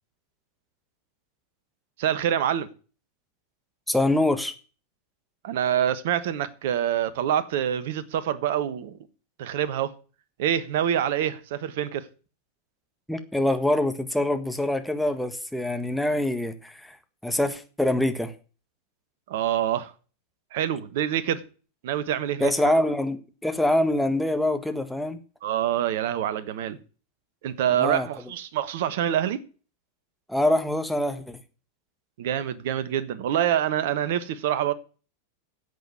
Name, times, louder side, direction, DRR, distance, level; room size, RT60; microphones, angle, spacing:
voice 1, 2.0-2.7 5.4-9.0 9.4-9.9 10.4-12.1 19.3-19.9 20.5-21.4 21.8-22.7 25.4-26.8 27.4-29.4 32.2-34.7, right 10 dB, 55° right, 1.3 m, -26 dB
voice 2, 3.9-4.5 13.1-17.0 17.2-18.3 22.4-25.2 27.8-28.1 30.3-31.4, left 1 dB, ahead, 1.6 m, -25 dB
10.5 x 8.2 x 9.3 m
figure-of-eight pair, 90°, 0 cm